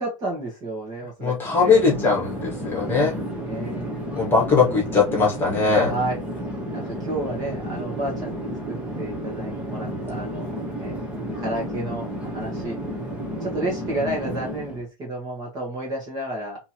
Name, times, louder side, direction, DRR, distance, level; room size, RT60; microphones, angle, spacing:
voice 1, 0.0-1.8 2.7-3.2 3.5-3.9 5.9-6.2 6.7-11.0 11.4-12.8 13.4-16.6, right 1 dB, 20° right, -1 dB, 1.4 m, -31 dB
voice 2, 1.2-3.1 4.1-5.9, left 4 dB, 10° left, -3 dB, 1.7 m, -20 dB
Chatter / Fixed-wing aircraft airplane, 1.4-14.8, equal, 5° right, 0.9 m, -32 dB
3.5 x 2.9 x 4.4 m, 0.26 s
supercardioid pair, 165°, 18 cm